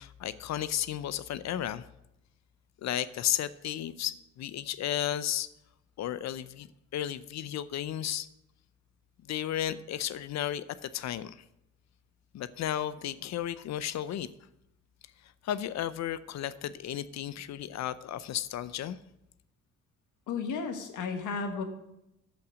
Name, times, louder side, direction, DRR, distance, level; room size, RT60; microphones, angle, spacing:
voice 1, 0.0-1.9 2.8-5.5 6.0-6.7 6.9-8.3 9.3-11.4 12.3-14.3 15.4-19.0, left 11 dB, 65° left, 16 dB, 0.5 m, -33 dB
voice 2, 20.3-21.6, left 5 dB, 80° left, 6 dB, 1.5 m, -33 dB
13.0 x 5.9 x 5.0 m, 0.86 s
cardioid pair, 90°, 30 cm